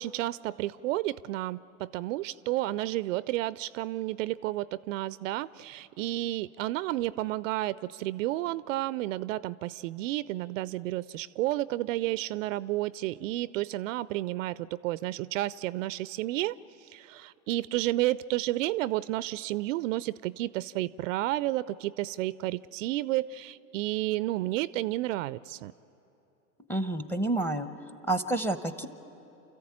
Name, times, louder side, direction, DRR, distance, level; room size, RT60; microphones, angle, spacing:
voice 1, 0.0-25.7, right 16 dB, 60° right, 19 dB, 0.5 m, -31 dB
voice 2, 26.7-27.7 28.1-28.9, right 2 dB, 5° left, 11 dB, 0.9 m, -29 dB
28.0 x 14.5 x 8.7 m, 2.8 s
hypercardioid pair, 105°, 43 cm